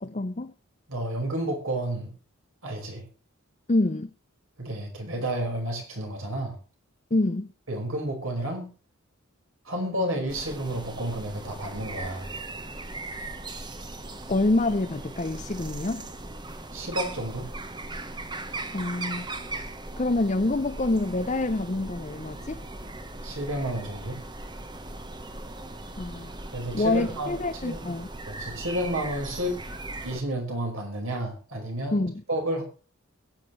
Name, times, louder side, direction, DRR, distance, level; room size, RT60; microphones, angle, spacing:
voice 1, 0.0-0.5 3.7-4.1 7.1-7.5 14.3-16.1 18.7-19.3 20.0-22.6 26.0-26.3 26.7-28.1 31.9-32.2, left 2 dB, 30° left, 8 dB, 0.6 m, -26 dB
voice 2, 0.9-2.1 2.6-3.1 4.6-6.6 7.7-8.7 9.7-12.3 16.7-17.5 23.2-24.2 26.5-27.4 27.6-27.8 28.3-29.6 30.0-32.6, right 1 dB, 65° right, 2 dB, 5.4 m, -31 dB
sound 1, 10.3-30.2, right 2 dB, 20° right, 1.2 m, -38 dB
22.0 x 9.0 x 3.3 m, 0.36 s
head